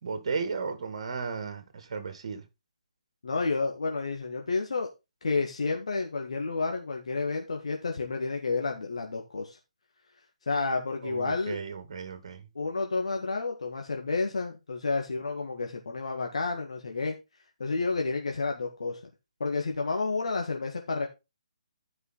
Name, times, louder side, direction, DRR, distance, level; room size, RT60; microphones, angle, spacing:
voice 1, 0.0-2.4 11.0-12.4, right 5 dB, 50° right, 2.1 m, -35 dB
voice 2, 3.2-4.9 5.2-9.6 10.4-11.6 12.5-17.1 17.6-19.0 19.4-21.1, left 3 dB, 60° left, 1.6 m, -30 dB
12.5 x 5.5 x 4.0 m
figure-of-eight pair, 140°, 4 cm